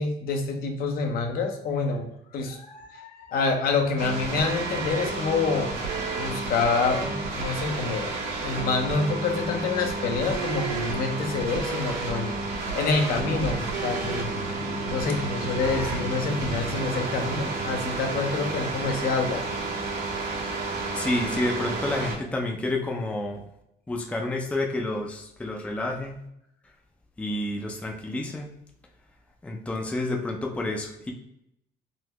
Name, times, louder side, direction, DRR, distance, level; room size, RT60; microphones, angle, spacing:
voice 1, 0.0-2.1 2.3-14.3 14.9-19.4, left 4 dB, 60° left, 3 dB, 0.7 m, -27 dB
sound 1, 4.0-22.2, right 3 dB, 85° right, 1.4 m, -31 dB
Vehicle, 11.9-20.8, right 1 dB, 55° right, 0.8 m, -40 dB
voice 2, 20.9-23.4 23.9-26.2 27.2-28.5 29.4-31.1, left 2 dB, 10° left, 1 dB, 0.4 m, -29 dB
3.9 x 2.1 x 2.9 m, 0.78 s
cardioid pair, 110°, 17 cm